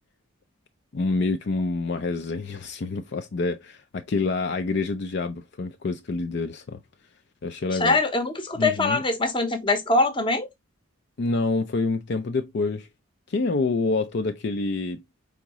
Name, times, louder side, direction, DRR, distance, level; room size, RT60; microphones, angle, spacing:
voice 1, 0.9-6.8 7.4-8.0 8.6-9.0 11.2-12.9 13.3-15.0, left 3 dB, 50° left, 0.4 m, -27 dB
voice 2, 7.7-10.5, left 2 dB, 25° left, 0.8 m, -23 dB
5.0 x 3.6 x 2.9 m
head